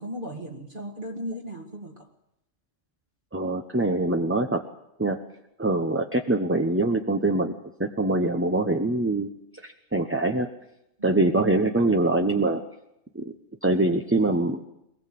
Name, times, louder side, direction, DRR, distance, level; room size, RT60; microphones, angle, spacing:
voice 1, 0.0-2.1 11.0-11.2, equal, 45° right, 1 dB, 2.3 m, -36 dB
voice 2, 3.3-4.6 5.0-5.2 5.6-7.5 7.8-9.3 9.6-10.5 11.0-12.6 13.1-13.2 13.6-14.6, right 2 dB, 10° right, 4 dB, 0.8 m, -24 dB
22.5 x 19.5 x 7.7 m, 0.83 s
omnidirectional pair, 1.3 m